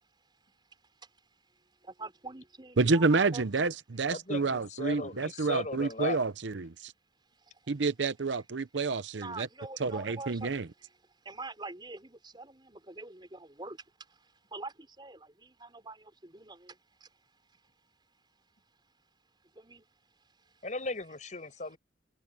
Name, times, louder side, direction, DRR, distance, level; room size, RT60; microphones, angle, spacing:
voice 1, 1.8-3.4 5.3-5.4 7.4-7.6 9.1-10.5 11.2-17.1 17.5-17.6 19.5-19.9 20.4-20.5, right 3 dB, 25° right, 4.6 m, -45 dB
voice 2, 2.8-6.9 7.7-9.5 9.8-10.7, right 3 dB, 75° right, 0.7 m, -29 dB
voice 3, 4.1-6.2 20.6-21.8, left 2 dB, 40° left, 5.4 m, -37 dB
head